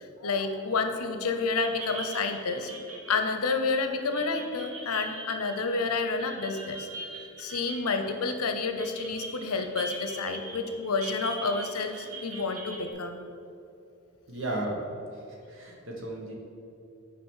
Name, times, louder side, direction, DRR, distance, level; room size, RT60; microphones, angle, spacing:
voice 1, 0.0-2.7 3.1-6.9 7.4-13.2, left 4 dB, 85° left, 7 dB, 0.7 m, -29 dB
sound 1, 0.8-1.1 1.4-12.9, right 2 dB, 75° right, 1.1 m, -42 dB
voice 2, 14.3-14.9 15.3-16.3, right 1 dB, 60° right, -1 dB, 1.4 m, -34 dB
6.2 x 5.0 x 6.4 m, 2.7 s
head